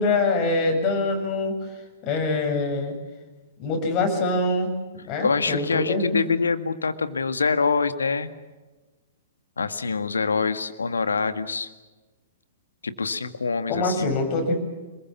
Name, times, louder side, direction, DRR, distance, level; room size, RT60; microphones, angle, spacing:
voice 1, 0.0-1.6 2.0-2.9 3.6-6.2 13.7-14.5, left 2 dB, 30° left, 4 dB, 7.4 m, -24 dB
voice 2, 5.2-8.3 9.6-11.7 12.8-14.1, left 4 dB, 70° left, 11 dB, 1.8 m, -25 dB
29.0 x 21.0 x 7.2 m, 1.2 s
figure-of-eight pair, 110°, 0 cm